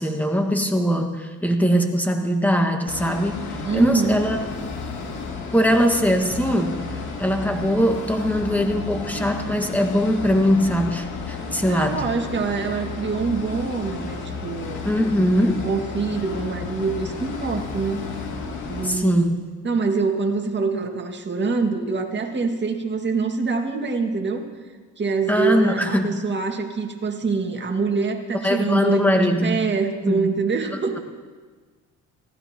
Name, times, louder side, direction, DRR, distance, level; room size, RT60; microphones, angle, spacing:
voice 1, 0.0-4.4 5.5-12.0 14.8-15.7 18.8-19.4 25.3-26.1 28.4-29.6 30.0-30.3, equal, 5° left, 4 dB, 1.7 m, -21 dB
sound 1, 2.9-18.9, left 4 dB, 80° left, 2.4 m, -33 dB
voice 2, 3.6-4.3 11.6-14.9 15.6-18.0 18.7-19.4 19.6-24.4 25.0-29.0 29.4-31.0, right 4 dB, 35° right, 2 dB, 2.0 m, -25 dB
25.0 x 15.5 x 3.0 m, 1.4 s
cardioid pair, 90°, 30 cm